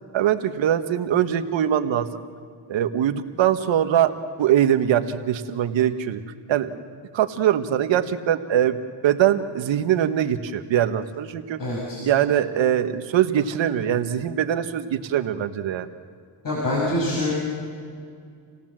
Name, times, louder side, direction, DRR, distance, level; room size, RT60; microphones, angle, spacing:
voice 1, 0.1-2.1 2.7-4.1 4.4-6.2 6.5-6.7 7.1-8.8 9.0-11.6 12.0-15.9, right 10 dB, 70° right, 9 dB, 1.5 m, -22 dB
voice 2, 11.6-12.0 16.4-17.3, left 1 dB, 45° left, -4 dB, 6.4 m, -25 dB
28.5 x 17.5 x 7.6 m, 2.2 s
cardioid pair, 115°, 47 cm